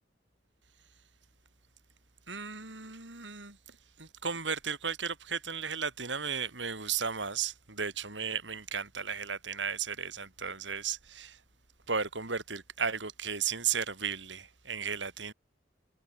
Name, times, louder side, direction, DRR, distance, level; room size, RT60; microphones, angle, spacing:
voice 1, 2.3-11.4 11.9-15.3, right 6 dB, 70° right, 5.0 m, -35 dB
head